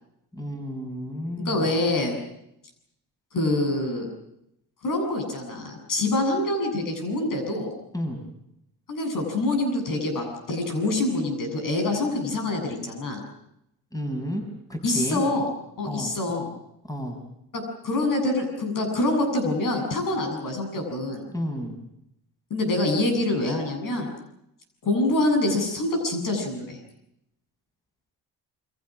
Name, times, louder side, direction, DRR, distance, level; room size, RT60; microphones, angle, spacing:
voice 1, 0.3-1.7 7.9-8.2 13.9-14.4 14.7-15.2 15.9-16.1 16.9-17.2 21.3-21.7, equal, 10° left, 3 dB, 6.0 m, -31 dB
voice 2, 1.4-2.1 3.3-4.1 4.8-7.7 8.9-13.2 14.8-15.5 15.8-16.5 17.5-21.2 22.5-24.1 24.8-26.8, left 2 dB, 60° left, 3 dB, 8.0 m, -25 dB
29.5 x 23.5 x 6.3 m, 0.80 s
cardioid pair, 105°, 37 cm